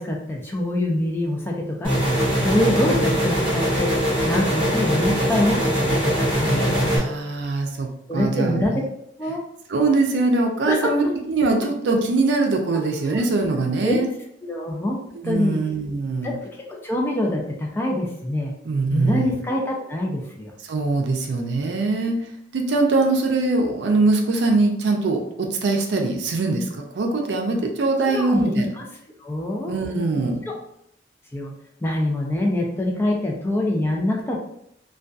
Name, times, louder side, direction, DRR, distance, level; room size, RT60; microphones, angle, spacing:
voice 1, 0.0-1.9 2.4-3.9 4.2-7.0 8.1-8.7 9.2-9.4 10.7-11.1 13.0-13.2 13.8-14.0 14.4-15.0 15.2-15.6 16.2-16.3 16.8-18.5 18.9-20.5 28.1-28.8 29.2-29.7 30.4-30.5 31.3-31.5 31.8-34.4, left 1 dB, 15° left, -1 dB, 0.4 m, -24 dB
sound 1, 1.8-7.0, equal, 30° right, 1.1 m, -21 dB
voice 2, 7.0-8.6 9.7-14.1 15.2-16.3 18.7-19.3 20.7-22.2 22.5-26.7 27.0-28.7 29.7-30.4, right 3 dB, 85° right, 3 dB, 0.4 m, -22 dB
2.6 x 2.2 x 2.3 m, 0.74 s
head